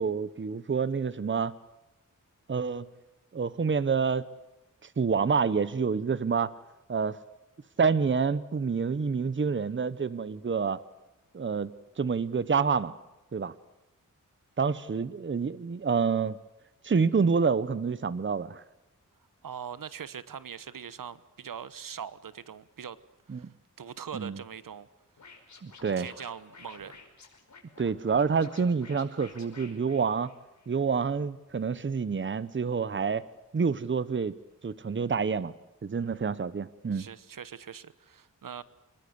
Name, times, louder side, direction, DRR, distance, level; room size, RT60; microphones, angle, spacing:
voice 1, 0.0-1.5 2.5-2.9 3.3-4.2 5.0-6.5 6.9-7.2 7.8-10.8 11.3-11.7 12.0-12.9 13.3-13.5 14.6-16.4 16.8-18.6 23.3-23.5 24.1-24.4 25.6-26.1 27.8-30.3 30.7-33.3 33.5-34.4 34.6-35.5 35.8-37.1, right 5 dB, 35° right, 16 dB, 0.9 m, -28 dB
voice 2, 19.4-23.0 23.3-23.5 23.8-24.9 26.0-26.9 36.0-36.4 36.9-38.6, right 7 dB, 85° right, 16 dB, 1.1 m, -42 dB
Scratching (performance technique), 25.2-30.7, left 4 dB, 60° left, 5.4 m, -52 dB
27.0 x 21.0 x 8.0 m, 0.93 s
wide cardioid pair, 130°, 32 cm